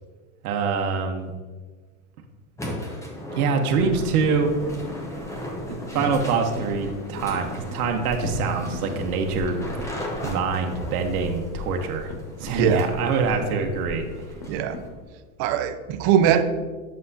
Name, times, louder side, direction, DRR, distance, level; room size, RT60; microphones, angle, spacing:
voice 1, 0.4-1.3 3.3-4.5 5.7-9.6 10.2-12.1 12.4-14.0, right 5 dB, 75° right, 4 dB, 1.0 m, -25 dB
sound 1, 2.6-14.9, equal, 5° left, 0.8 m, -37 dB
sound 2, 3.7-15.0, left 2 dB, 65° left, 1.4 m, -37 dB
voice 2, 12.5-12.9 14.5-14.8 15.4-16.4, right 9 dB, 35° right, 9 dB, 0.5 m, -21 dB
7.7 x 6.4 x 2.7 m, 1.4 s
supercardioid pair, 130°, 44 cm